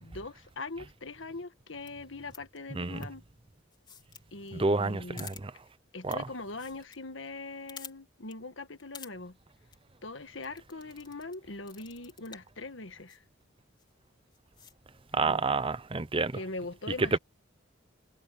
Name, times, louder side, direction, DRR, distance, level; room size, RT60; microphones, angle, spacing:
voice 1, 0.0-3.2 4.3-5.3 5.9-9.4 10.0-13.2 15.2-15.4 16.3-17.2, left 3 dB, 75° left, 1.6 m, -41 dB
sound 1, 1.9-2.0 2.3-2.6 3.0-3.1 3.7-4.2 4.5-4.6 4.8-4.9 5.2-5.4 6.1-6.2 6.5-7.0 7.3-7.4 7.7-7.9 8.3-8.4 8.8-9.1 9.5-9.8 10.4-11.4 11.7-12.5 13.1-13.2 13.8-13.9 14.3-14.7, left 6 dB, 25° left, 4.1 m, -48 dB
voice 2, 4.5-5.5 6.0-6.2 15.1-16.4 17.0-17.2, right 3 dB, 25° right, 0.7 m, -29 dB
head